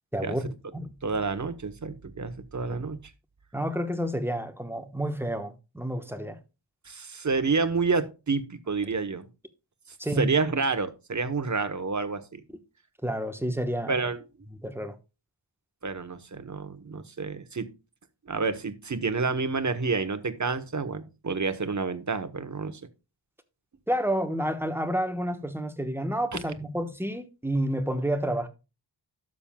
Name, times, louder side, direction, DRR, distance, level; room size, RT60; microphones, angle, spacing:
voice 1, 0.1-0.9 3.5-6.4 10.0-10.3 13.0-13.9 14.6-14.9 23.9-28.5, right 1 dB, 5° right, 1.1 m, -29 dB
voice 2, 1.0-3.0 6.9-9.3 10.2-12.4 13.9-14.2 15.8-17.7 18.3-22.8 26.3-26.4, right 4 dB, 40° right, 1.1 m, -29 dB
12.0 x 7.3 x 2.3 m
wide cardioid pair, 85°, 46 cm